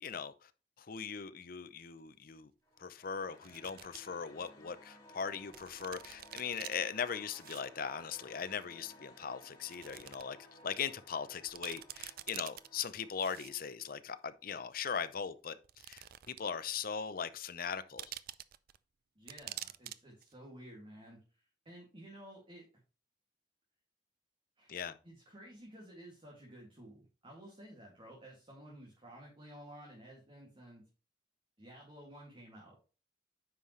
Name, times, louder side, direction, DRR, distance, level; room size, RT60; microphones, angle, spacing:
voice 1, 0.0-0.5 0.8-2.5 2.8-10.4 10.6-15.6 15.9-18.1 24.7-25.0, left 6 dB, 55° left, 0.6 m, -39 dB
sound 1, 1.8-1.9 3.4-4.0 4.5-4.6 5.5-6.8 7.3-7.6 7.9-8.0 8.9-9.0 9.6-10.2 10.6-10.7 11.2-11.3 11.5-12.7 13.2-13.8 14.7-14.8 15.6-16.6 16.8-16.9 18.0-18.8 19.3-20.0 20.2-20.3, right 13 dB, 55° right, 0.4 m, -47 dB
sound 2, 2.6-13.7, left 1 dB, 20° left, 4.7 m, -58 dB
voice 2, 19.2-22.7 24.6-24.7 25.0-30.8 31.6-32.8, right 1 dB, 30° right, 2.3 m, -53 dB
9.3 x 5.6 x 3.2 m
head